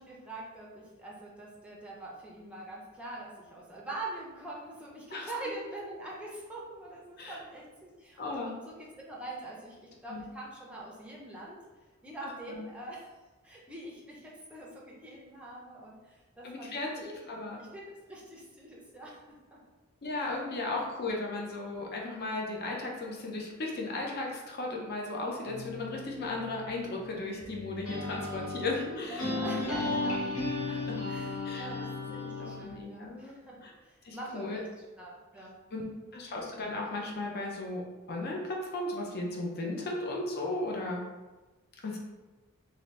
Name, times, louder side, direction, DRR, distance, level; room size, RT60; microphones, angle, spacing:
voice 1, 0.0-11.6 12.0-13.1 13.4-17.0 17.6-17.8 18.1-19.2 19.5-19.6 20.1-20.3 21.1-21.2 29.0-30.3 30.7-31.9 32.2-34.7 35.0-35.6 35.9-36.0 41.7-42.0, right 2 dB, 5° right, -5 dB, 0.5 m, -44 dB
voice 2, 8.2-8.5 10.1-10.3 12.2-12.6 16.4-17.6 20.0-29.4 30.9-31.0 31.4-31.7 32.1-33.4 33.6-33.7 34.0-34.6 35.7-41.0 41.8-42.0, left 2 dB, 45° left, -1 dB, 0.6 m, -36 dB
sound 1, 25.5-32.6, left 2 dB, 75° left, 0.9 m, -35 dB
2.7 x 2.6 x 3.1 m, 1.2 s
head